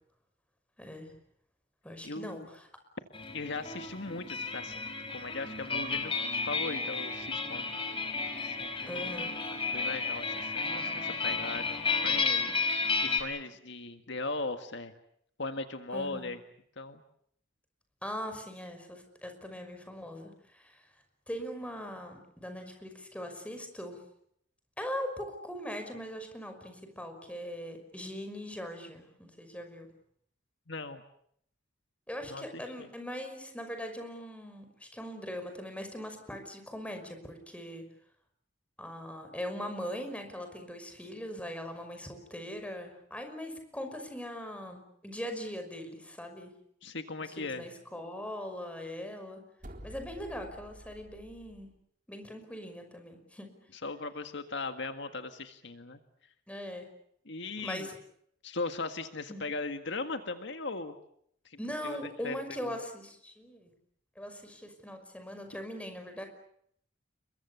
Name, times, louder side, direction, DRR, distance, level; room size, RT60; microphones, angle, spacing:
voice 1, 0.8-1.1 1.8-2.7 8.9-9.4 15.9-16.3 18.0-20.8 21.3-24.0 24.8-29.9 32.1-37.8 38.8-46.5 47.2-49.4 49.8-51.7 52.1-53.5 56.5-56.9 57.6-58.0 59.3-59.4 61.6-63.7 64.2-66.3, equal, 5° left, 6 dB, 5.7 m, -41 dB
voice 2, 2.0-2.5 3.3-6.1 6.5-7.7 8.4-9.1 9.5-14.9 15.4-16.4 16.8-17.0 30.7-31.0 32.3-32.9 46.8-47.6 53.8-56.0 57.3-57.9 58.4-61.0 61.5-61.6 61.8-62.4 62.6-62.8, left 3 dB, 65° left, 8 dB, 1.8 m, -38 dB
sound 1, 3.1-13.2, left 4 dB, 30° left, 4.0 m, -32 dB
sound 2, 49.6-51.7, equal, 45° right, 4.0 m, -49 dB
29.5 x 23.0 x 7.1 m, 0.68 s
head